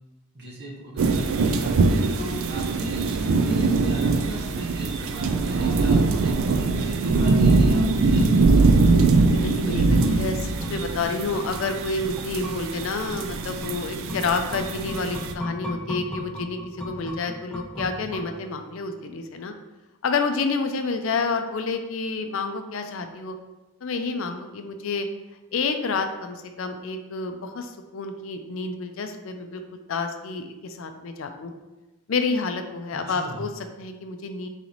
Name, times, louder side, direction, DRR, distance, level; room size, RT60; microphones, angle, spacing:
voice 1, 0.3-8.7 32.9-33.4, equal, 50° right, -3 dB, 1.0 m, -37 dB
sound 1, 1.0-15.3, right 3 dB, 70° right, 0.4 m, -22 dB
voice 2, 8.9-19.5 20.0-23.4 23.8-25.1 25.5-29.6 29.9-31.5 32.1-34.5, left 4 dB, 65° left, 6 dB, 0.4 m, -29 dB
sound 2, 9.2-18.8 19.1-19.2, equal, 5° left, 0.4 m, -37 dB
4.0 x 3.0 x 3.9 m, 1.1 s
head